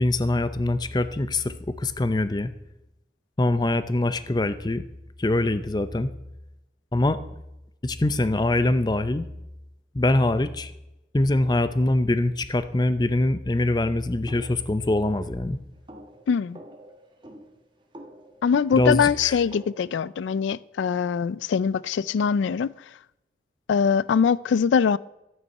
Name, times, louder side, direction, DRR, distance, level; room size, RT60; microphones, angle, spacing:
voice 1, 0.0-2.5 3.4-4.9 5.2-6.1 6.9-7.2 7.8-9.2 9.9-10.7 11.1-15.6 18.7-19.4, left 2 dB, 25° left, 0.5 m, -23 dB
sound 1, 14.3-20.0, equal, 25° right, 1.4 m, -48 dB
voice 2, 16.3-16.6 18.4-22.7 23.7-25.0, left 6 dB, 85° left, 0.3 m, -22 dB
13.0 x 9.2 x 5.5 m
head